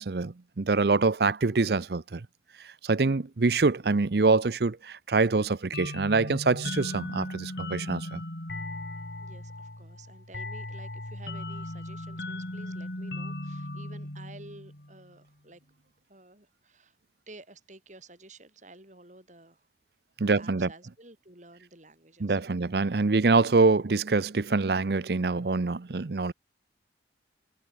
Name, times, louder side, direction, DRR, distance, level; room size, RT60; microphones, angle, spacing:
voice 1, 0.0-2.3 2.6-8.2 20.2-20.7 22.2-26.3, right 3 dB, 60° right, 0.7 m, -25 dB
sound 1, 5.7-15.1, left 1 dB, 65° left, 4.2 m, -37 dB
voice 2, 9.2-15.6 16.1-17.0 17.3-19.7 20.4-22.7, right 2 dB, 45° right, 7.5 m, -52 dB
head